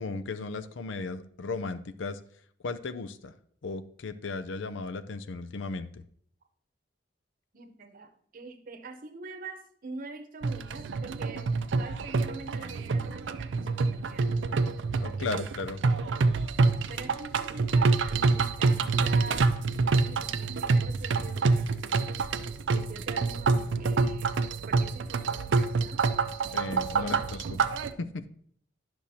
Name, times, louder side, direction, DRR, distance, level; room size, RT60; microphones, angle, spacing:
voice 1, 0.0-2.2 2.6-3.3 3.6-6.0 15.0-15.8 26.5-27.4 28.0-28.2, left 3 dB, 85° left, 12 dB, 0.5 m, -35 dB
voice 2, 7.5-14.5 15.2-15.4 16.6-19.5 20.0-21.8 22.7-26.1 26.9-27.2 27.4-27.6, right 3 dB, 50° right, 7 dB, 0.8 m, -45 dB
sound 1, 10.4-27.9, right 4 dB, 75° right, 0.4 m, -27 dB
10.0 x 6.1 x 2.8 m, 0.62 s
head